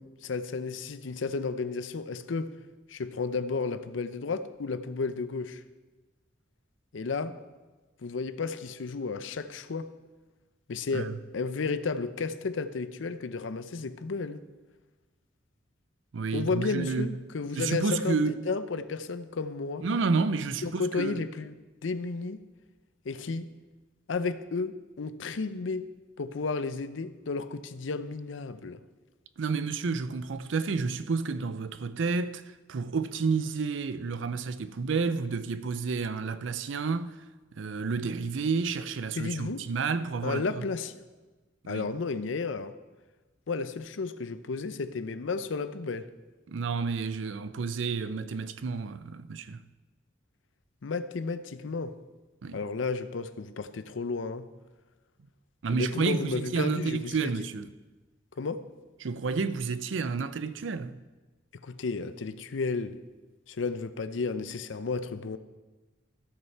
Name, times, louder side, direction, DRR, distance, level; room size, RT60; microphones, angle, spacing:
voice 1, 0.0-2.5 2.9-5.6 6.9-7.4 8.0-9.9 10.7-14.4 16.3-19.9 20.6-21.5 21.8-22.4 23.0-23.5 24.1-25.9 26.2-28.8 39.1-39.7 40.2-41.0 41.7-42.7 43.5-46.1 50.8-51.9 52.5-54.5 55.7-57.5 58.4-58.6 61.6-63.0 63.5-65.4, left 4 dB, 85° left, 0.6 m, -33 dB
voice 2, 16.1-17.2 17.5-18.4 19.8-21.2 29.4-37.2 37.5-40.7 41.6-41.9 46.5-49.6 52.4-52.6 55.6-57.7 59.0-61.0, right 4 dB, 80° right, 0.5 m, -30 dB
14.0 x 6.5 x 4.5 m
head